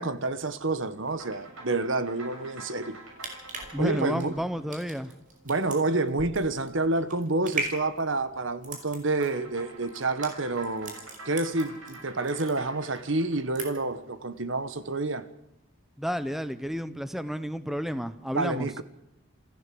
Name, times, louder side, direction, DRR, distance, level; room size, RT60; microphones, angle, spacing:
voice 1, 0.0-3.0 3.8-4.3 5.4-11.0 11.2-15.3 18.3-18.8, right 2 dB, 70° right, 1.4 m, -28 dB
sound 1, 1.1-5.7 9.1-14.5, right 2 dB, 90° right, 7.2 m, -47 dB
sound 2, 3.1-12.0 12.2-13.0 13.3-14.0 14.3-14.5, right 3 dB, 40° right, 5.3 m, -38 dB
voice 2, 3.7-5.2 16.0-18.7, equal, ahead, 0.9 m, -31 dB
28.5 x 14.5 x 7.9 m
head